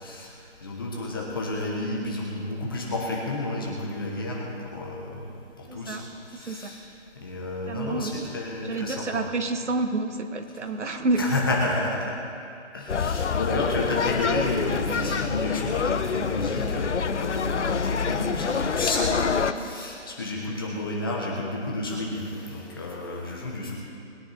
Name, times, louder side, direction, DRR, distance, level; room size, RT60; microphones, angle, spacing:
voice 1, 0.0-5.2 5.6-6.8 7.2-9.3 11.2-12.1 12.7-23.8, left 2 dB, 20° left, -2 dB, 1.2 m, -31 dB
voice 2, 5.7-6.0 6.5-6.7 7.7-8.3 8.6-11.3, right 2 dB, 70° right, 6 dB, 1.5 m, -28 dB
sound 1, 12.9-19.5, left 6 dB, 70° left, 0.8 m, -26 dB
21.0 x 9.6 x 4.3 m, 2.6 s
hypercardioid pair, 170°, 37 cm